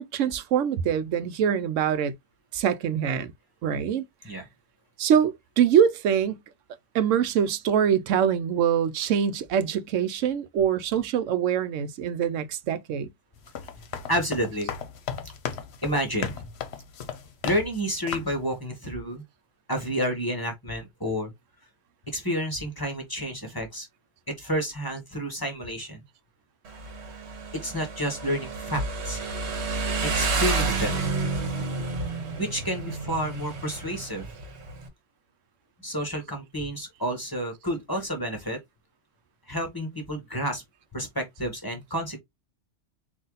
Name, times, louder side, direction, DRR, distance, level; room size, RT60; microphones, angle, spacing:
voice 1, 0.0-2.1 2.5-3.3 3.6-4.0 5.0-6.4 6.9-13.1, right 8 dB, 85° right, 1.0 m, -24 dB
sound 1, 13.4-17.8 18.1-18.4, left 7 dB, 60° left, 0.9 m, -35 dB
voice 2, 14.1-14.7 15.8-16.5 17.4-19.2 19.7-21.3 22.1-23.9 24.4-26.0 27.5-29.2 30.0-31.0 32.4-34.3 35.8-38.6 39.5-40.6 40.9-42.2, equal, 20° left, 1.3 m, -30 dB
Motorcycle, 26.7-34.9, right 3 dB, 65° right, 1.3 m, -30 dB
4.0 x 2.7 x 3.8 m
omnidirectional pair, 1.3 m